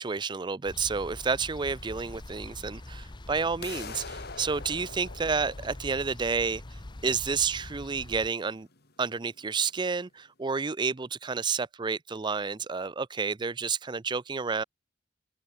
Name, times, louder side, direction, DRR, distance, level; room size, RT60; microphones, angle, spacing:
voice 1, 0.0-6.6 7.0-8.7 9.0-14.6, right 5 dB, 25° right, 0.5 m, -30 dB
sound 1, 0.7-8.3, left 1 dB, 25° left, 0.7 m, -44 dB
sound 2, 3.6-9.6, left 4 dB, 55° left, 6.0 m, -46 dB
head